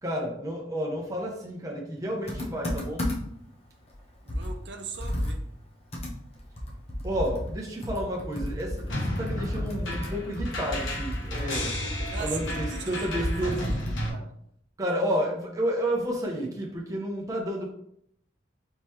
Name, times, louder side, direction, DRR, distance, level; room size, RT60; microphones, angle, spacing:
voice 1, 0.0-3.1 7.0-11.7 12.2-13.7 14.8-17.7, equal, 20° right, -2 dB, 0.7 m, -31 dB
Computer keyboard, 2.3-3.4 3.9-4.0 4.3-14.1, left 1 dB, 30° left, 0.9 m, -33 dB
voice 2, 4.2-5.4 12.1-13.6 14.1-14.3, right 5 dB, 60° right, 4 dB, 0.6 m, -40 dB
sound 1, 8.9-14.1, left 1 dB, 80° left, 1.3 m, -34 dB
4.4 x 3.7 x 3.2 m, 0.71 s
head